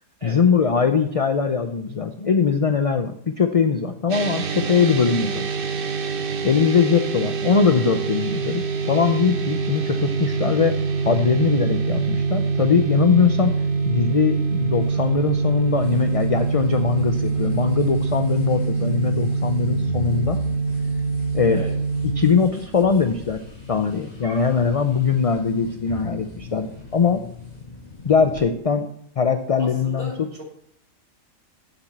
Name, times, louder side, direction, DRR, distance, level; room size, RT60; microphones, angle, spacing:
voice 1, 0.2-5.4 6.4-10.7 11.0-13.5 13.9-20.4 21.3-21.6 22.2-23.4 23.7-27.2 28.0-28.9 29.2-30.3, left 6 dB, 50° left, 8 dB, 0.4 m, -21 dB
sound 1, 4.1-22.4, right 4 dB, 50° right, 1.0 m, -24 dB
sound 2, 14.8-28.5, left 3 dB, 35° left, 2.2 m, -38 dB
voice 2, 29.6-30.4, equal, 25° right, -1 dB, 2.3 m, -37 dB
7.2 x 6.9 x 7.9 m, 0.70 s
omnidirectional pair, 1.3 m